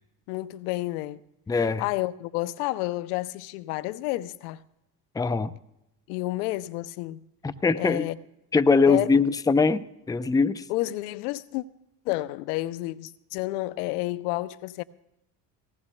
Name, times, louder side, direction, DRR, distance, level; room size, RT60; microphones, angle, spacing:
voice 1, 0.3-1.2 1.8-4.6 6.1-7.2 7.8-8.2 8.9-9.2 10.7-11.6 12.1-14.8, left 18 dB, 80° left, 0.6 m, -30 dB
voice 2, 1.5-1.8 5.2-5.5 7.4-8.1 8.5-10.6, left 4 dB, 10° left, 0.5 m, -22 dB
19.5 x 18.5 x 2.2 m
hypercardioid pair, 65°, 45 cm